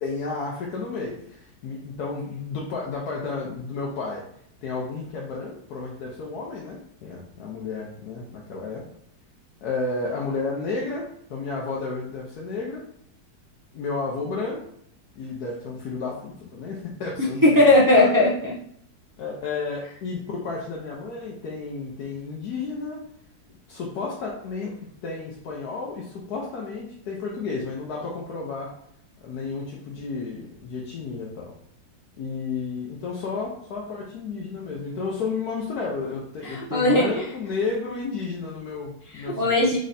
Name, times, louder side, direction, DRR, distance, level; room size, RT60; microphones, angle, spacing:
voice 1, 0.0-4.2 4.6-8.8 9.6-11.0 11.3-12.8 13.7-14.6 15.2-17.6 17.9-18.1 19.2-23.0 23.7-24.8 25.0-28.7 29.2-31.5 32.2-39.6, left 4 dB, 70° left, -3 dB, 1.2 m, -32 dB
voice 2, 17.4-18.5 36.4-37.2 39.1-39.8, left 1 dB, 35° right, -5 dB, 0.3 m, -18 dB
3.9 x 3.2 x 4.0 m, 0.70 s
omnidirectional pair, 1.8 m